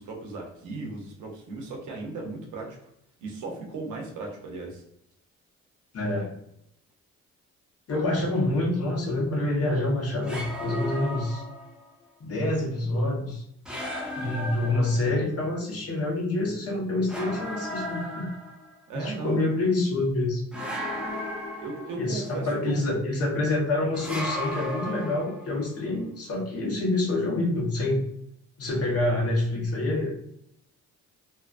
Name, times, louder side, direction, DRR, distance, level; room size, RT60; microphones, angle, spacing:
voice 1, 0.0-2.9 3.2-4.8 18.9-19.5 21.6-23.0, right 3 dB, 75° right, 0 dB, 0.8 m, -36 dB
voice 2, 5.9-6.3 7.9-11.4 12.2-13.4 14.1-18.3 18.9-20.4 22.0-28.0 28.6-30.1, left 2 dB, 50° left, -2 dB, 1.1 m, -27 dB
sound 1, 7.9-8.5 10.2-11.9 13.6-15.3 17.1-18.8 20.5-22.3 23.9-25.6, left 1 dB, 5° right, 0.8 m, -35 dB
2.8 x 2.3 x 2.5 m, 0.74 s
cardioid pair, 90°, 30 cm